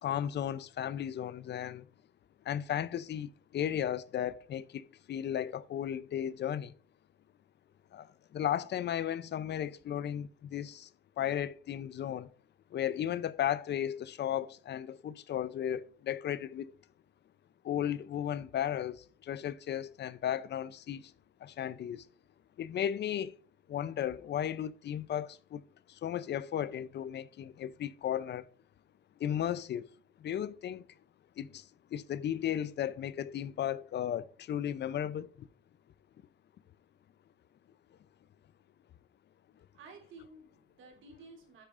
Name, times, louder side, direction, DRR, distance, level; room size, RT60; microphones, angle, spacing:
voice 1, 0.0-1.9 2.4-6.7 7.9-10.9 11.2-12.3 12.7-16.7 17.6-21.1 21.4-22.1 22.6-23.3 23.7-25.6 25.9-28.5 29.2-29.9 30.2-30.9 31.4-35.5, left 10 dB, 60° left, 0.6 m, -35 dB
voice 2, 39.7-41.7, right 3 dB, 90° right, 3.4 m, -53 dB
9.0 x 8.3 x 2.5 m
cardioid pair, 90°, 20 cm